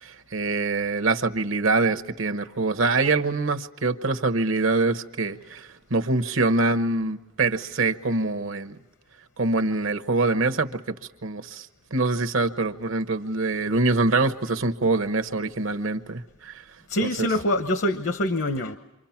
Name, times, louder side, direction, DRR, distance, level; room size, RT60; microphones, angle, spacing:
voice 1, 0.0-8.7 9.4-10.9 11.2-16.6 17.2-17.3, right 3 dB, 65° right, 7 dB, 1.1 m, -24 dB
voice 2, 16.9-18.8, left 1 dB, 55° left, 8 dB, 0.9 m, -25 dB
28.5 x 25.5 x 5.9 m, 1.0 s
head